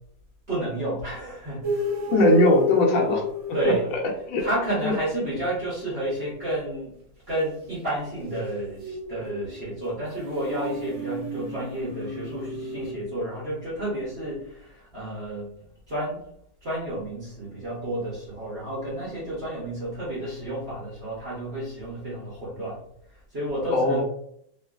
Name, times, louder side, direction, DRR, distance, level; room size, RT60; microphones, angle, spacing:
voice 1, 0.5-1.8 3.5-4.0 4.4-6.9 7.3-15.5 15.9-16.2 16.6-22.8 23.3-24.0, right 1 dB, 50° right, -8 dB, 0.8 m, -31 dB
sound 1, 1.6-4.3 7.7-12.9, equal, 90° right, 0.6 m, -32 dB
voice 2, 2.1-3.2 4.3-4.5 4.8-5.0 23.7-24.0, left 2 dB, 75° left, 0 dB, 1.2 m, -20 dB
2.9 x 2.4 x 2.3 m, 0.69 s
omnidirectional pair, 2.1 m